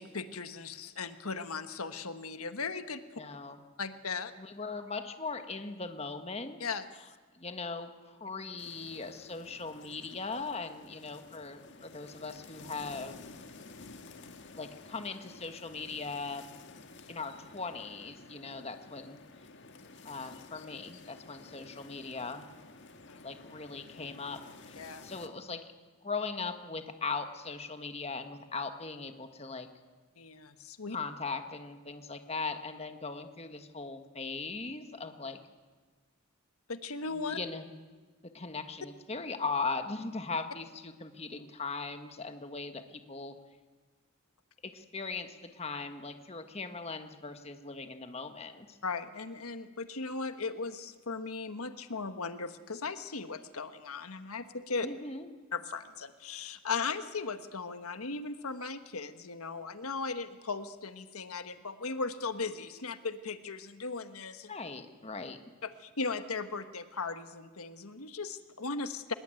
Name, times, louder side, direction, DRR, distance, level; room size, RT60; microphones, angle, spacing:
voice 1, 0.0-3.2 3.8-4.3 6.6-6.8 23.1-23.3 24.8-25.0 30.2-31.0 36.7-37.4 48.8-54.9 55.5-64.5 65.6-69.1, left 4 dB, 90° left, 10 dB, 1.4 m, -37 dB
voice 2, 3.2-3.6 4.4-6.6 7.3-13.2 14.5-16.5 17.1-19.2 20.0-22.5 23.2-25.7 26.0-29.7 30.9-35.4 37.3-37.7 38.3-43.3 44.6-48.8 54.8-55.3 64.5-65.4, left 4 dB, 30° left, 7 dB, 1.5 m, -39 dB
sound 1, 8.6-25.3, left 3 dB, 55° left, 1.8 m, -52 dB
24.0 x 21.5 x 9.1 m, 1.4 s
head